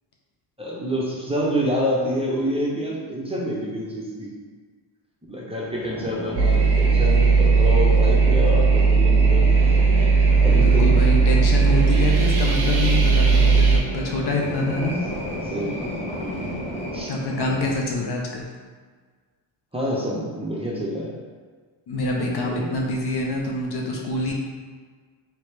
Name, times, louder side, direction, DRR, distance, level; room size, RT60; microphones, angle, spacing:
voice 1, 0.6-4.3 5.3-9.8 10.4-11.1 15.4-16.5 16.9-17.1 19.7-21.1 22.4-22.7, equal, 10° right, -5 dB, 0.7 m, -27 dB
sound 1, 5.6-17.6, equal, 15° left, 0.9 m, -31 dB
sound 2, 6.3-13.8, right 4 dB, 50° right, 0.8 m, -17 dB
voice 2, 10.5-15.0 17.1-18.5 21.9-24.3, left 2 dB, 50° left, -1 dB, 0.7 m, -26 dB
3.0 x 3.0 x 3.2 m, 1.6 s
cardioid pair, 80°, 50 cm